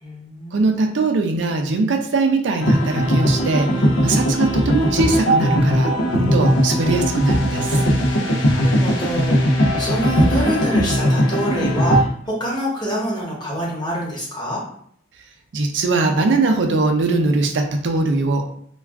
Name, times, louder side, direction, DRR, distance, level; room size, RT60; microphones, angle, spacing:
voice 1, 0.0-0.9 8.4-9.5 9.8-14.6, equal, 25° left, -5 dB, 0.9 m, -26 dB
voice 2, 0.5-3.7 4.0-7.8 15.5-18.4, right 3 dB, 70° right, 4 dB, 0.4 m, -20 dB
sound 1, 2.6-12.0, equal, 80° left, 0.5 m, -18 dB
2.3 x 2.3 x 3.4 m, 0.63 s
head